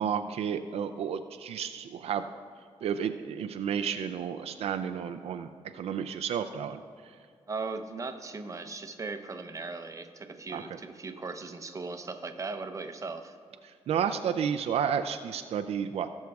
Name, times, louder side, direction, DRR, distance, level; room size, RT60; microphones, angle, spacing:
voice 1, 0.0-2.3 2.8-5.5 5.7-6.8 10.5-10.6 13.9-16.1, right 8 dB, 75° right, 8 dB, 0.4 m, -31 dB
voice 2, 7.5-13.4, right 3 dB, 30° right, 7 dB, 0.7 m, -38 dB
18.5 x 6.3 x 2.3 m, 2.2 s
cardioid pair, 95°, 10 cm